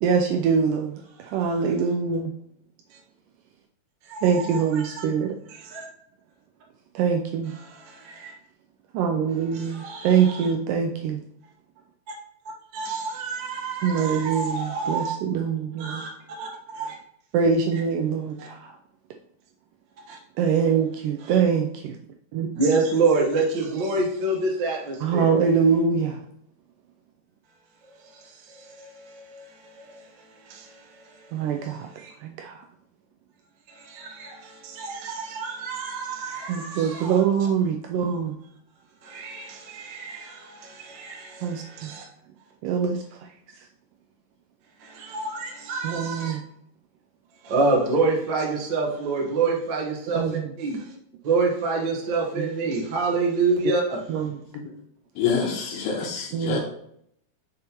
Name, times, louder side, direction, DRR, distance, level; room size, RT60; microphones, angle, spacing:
voice 1, 0.0-2.3 4.2-5.3 7.0-7.5 8.9-11.2 13.8-16.0 17.3-18.7 20.4-22.0 22.3-22.5 25.0-26.2 31.3-31.9 32.2-32.6 36.5-38.3 41.4-41.9 42.6-43.3 45.8-46.4 50.1-50.5 52.4-52.5 54.1-54.4 56.3-56.6, right 6 dB, 85° right, 3 dB, 1.9 m, -24 dB
voice 2, 4.0-5.0 5.5-5.9 7.6-8.3 9.5-10.5 12.7-15.2 15.8-17.0 18.4-18.5 20.1-20.2 21.2-21.4 22.5-25.3 28.1-30.0 30.4-31.3 31.6-32.1 33.7-37.2 39.0-42.0 44.8-46.4 47.4-50.8 51.2-54.0, right 3 dB, 60° right, -1 dB, 1.1 m, -28 dB
voice 3, 55.2-56.6, left 6 dB, 75° left, -4 dB, 2.7 m, -26 dB
6.9 x 6.5 x 3.0 m, 0.70 s
omnidirectional pair, 4.3 m